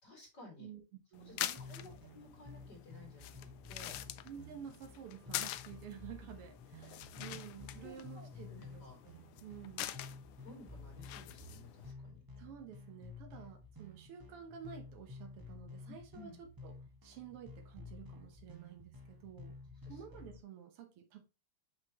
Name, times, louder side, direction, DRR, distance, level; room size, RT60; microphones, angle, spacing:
voice 1, 0.0-0.7 1.2-4.0 7.1-7.4 7.8-9.0 10.4-12.2 15.8-16.4 19.8-20.0, left 2 dB, 50° left, 3.1 m, -56 dB
sound 1, 1.1-11.9, left 14 dB, 80° left, 1.5 m, -46 dB
voice 2, 1.1-2.0 4.2-10.0 12.4-16.8 17.0-19.6 19.9-21.2, right 8 dB, 90° right, 2.1 m, -51 dB
sound 2, 1.6-20.4, left 3 dB, 35° right, 0.3 m, -52 dB
6.4 x 5.9 x 2.9 m
omnidirectional pair, 2.4 m